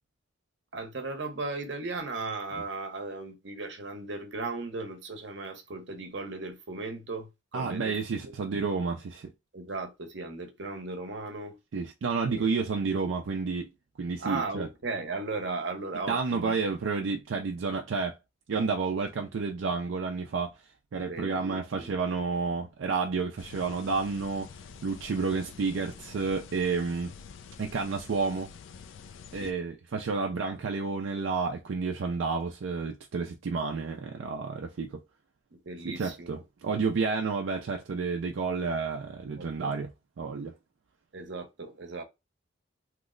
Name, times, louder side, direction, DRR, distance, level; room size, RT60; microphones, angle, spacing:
voice 1, 0.7-8.0 8.2-8.3 9.5-11.5 12.3-12.7 14.2-16.5 21.1-21.9 29.4-29.5 35.6-36.4 39.4-39.7 41.1-42.0, right 3 dB, 65° right, 0.8 m, -37 dB
voice 2, 7.5-9.3 11.7-13.7 14.0-14.7 16.1-18.2 18.5-20.6 20.9-24.5 24.8-27.1 27.6-28.5 29.3-35.0 35.8-39.9 40.2-40.5, right 4 dB, 85° right, 0.4 m, -30 dB
sound 1, 23.4-29.5, left 6 dB, 85° left, 0.4 m, -48 dB
2.9 x 2.0 x 3.7 m
head